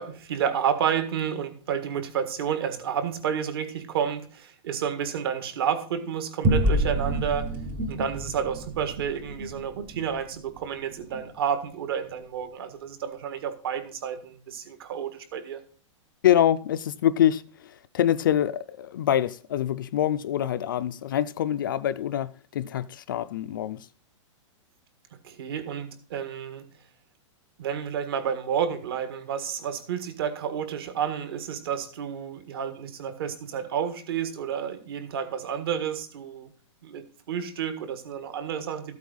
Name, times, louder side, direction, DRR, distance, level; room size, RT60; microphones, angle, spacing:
voice 1, 0.0-7.5 7.9-15.6 25.2-26.7 27.6-36.5 36.8-38.9, right 8 dB, 45° right, 1.7 m, -30 dB
sound 1, 6.4-11.3, right 1 dB, 10° right, 0.6 m, -29 dB
voice 2, 16.2-23.9, left 11 dB, 40° left, 0.4 m, -25 dB
14.0 x 8.4 x 4.0 m
supercardioid pair, 180°, 17 cm